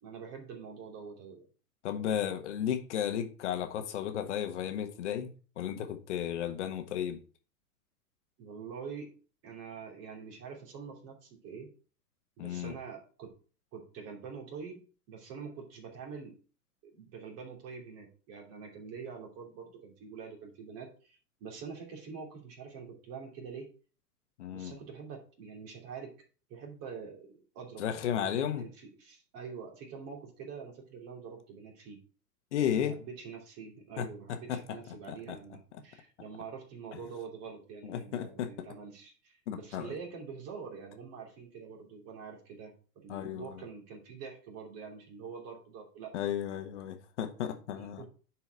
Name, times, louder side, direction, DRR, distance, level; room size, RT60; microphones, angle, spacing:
voice 1, 0.0-1.5 8.4-9.1 9.4-11.7 12.4-13.3 13.7-14.8 15.1-16.3 16.8-23.7 24.5-26.1 26.5-32.0 32.6-46.1 47.8-48.1, right 6 dB, 30° right, 2.9 m, -45 dB
voice 2, 1.8-7.2 12.4-12.7 24.4-24.7 27.8-28.6 32.5-33.0 34.0-34.1 34.5-34.6 35.1-35.4 36.9-37.0 37.8-38.5 39.5-39.9 43.1-43.6 46.1-48.0, left 9 dB, 45° left, 1.5 m, -34 dB
10.5 x 4.7 x 4.5 m
figure-of-eight pair, 105°, 47 cm